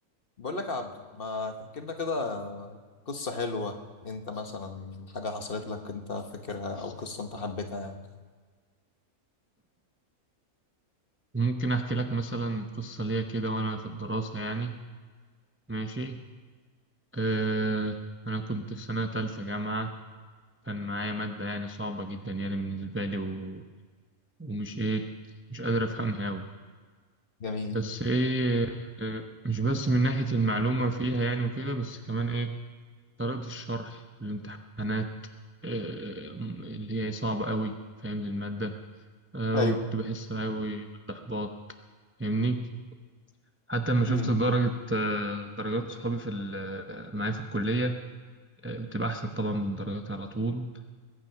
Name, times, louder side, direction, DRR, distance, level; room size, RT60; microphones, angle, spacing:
voice 1, 0.4-2.8 3.1-3.8 4.0-8.0 27.4-27.8 39.5-39.8 44.1-44.3, left 3 dB, 45° left, 5 dB, 1.2 m, -34 dB
voice 2, 11.3-14.8 15.7-16.2 17.1-18.0 18.3-19.9 20.6-23.6 24.4-25.1 25.5-26.5 27.7-32.6 33.2-35.1 35.6-37.7 38.0-38.7 39.3-41.5 42.2-42.8 43.7-48.0 48.6-50.7, right 2 dB, 15° right, 5 dB, 0.5 m, -30 dB
21.5 x 9.4 x 5.7 m, 1.5 s
omnidirectional pair, 1.5 m